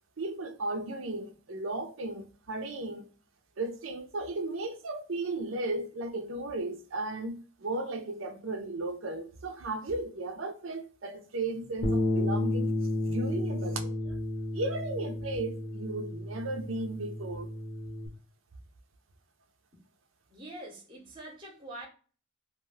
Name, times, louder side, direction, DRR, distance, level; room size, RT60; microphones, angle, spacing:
voice 1, 0.2-3.1 3.6-12.7 13.1-14.2 14.5-17.5, right 2 dB, 90° right, 0.6 m, -35 dB
Bass guitar, 11.8-18.1, left 1 dB, 35° left, 0.7 m, -32 dB
voice 2, 20.3-21.9, right 1 dB, 25° right, 0.8 m, -44 dB
2.5 x 2.2 x 3.2 m
head